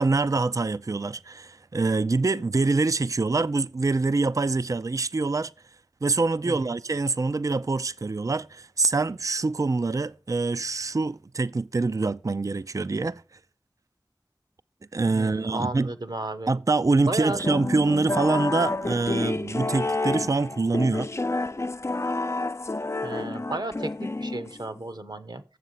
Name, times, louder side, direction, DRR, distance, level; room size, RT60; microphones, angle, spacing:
voice 1, 0.0-5.5 6.0-13.2 14.9-15.9 16.5-21.1, right 3 dB, 45° right, 0.4 m, -25 dB
voice 2, 15.1-16.5 17.1-17.4 23.0-25.4, right 2 dB, 60° right, 0.9 m, -33 dB
sound 1, 17.4-24.8, left 2 dB, 35° left, 0.4 m, -29 dB
8.0 x 7.3 x 5.7 m
wide cardioid pair, 45°, 8 cm